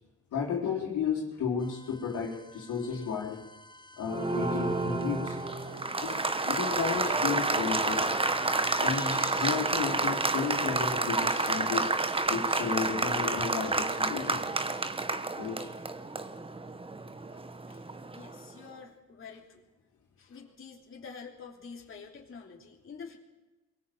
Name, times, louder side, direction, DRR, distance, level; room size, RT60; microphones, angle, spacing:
voice 1, 0.3-3.4 4.0-5.6 6.0-8.1 8.8-11.9 12.3-14.5 15.4-15.7, left 6 dB, 80° left, -1 dB, 4.0 m, -33 dB
sound 1, 1.6-9.6, left 3 dB, 15° left, 1.1 m, -48 dB
Applause, 4.1-18.4, right 3 dB, 20° right, 1.2 m, -30 dB
voice 2, 17.7-19.6 20.2-23.2, left 5 dB, 45° left, -1 dB, 3.2 m, -47 dB
23.0 x 18.0 x 7.8 m, 1.2 s
cardioid pair, 90°, 30 cm